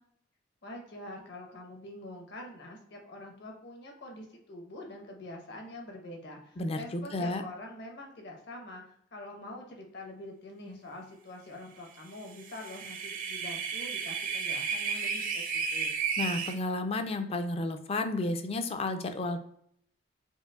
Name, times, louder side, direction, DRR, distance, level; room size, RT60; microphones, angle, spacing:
voice 1, 0.6-15.9, left 1 dB, 60° left, 1 dB, 1.0 m, -45 dB
voice 2, 6.6-7.4 16.2-19.4, left 2 dB, 30° left, 8 dB, 0.4 m, -32 dB
sound 1, 12.3-16.6, right 6 dB, 45° right, 0.5 m, -33 dB
5.4 x 2.5 x 2.3 m, 0.68 s
head